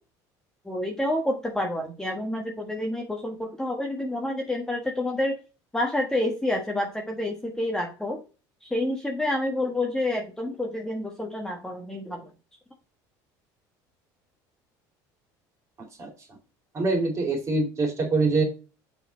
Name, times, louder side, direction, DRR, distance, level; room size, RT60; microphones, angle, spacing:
voice 1, 0.6-5.4 5.7-8.2 8.6-12.3, left 1 dB, 5° left, 0 dB, 1.3 m, -28 dB
voice 2, 16.7-18.4, right 3 dB, 35° right, 2 dB, 2.7 m, -24 dB
6.9 x 4.2 x 4.0 m, 0.32 s
supercardioid pair, 105°, 9 cm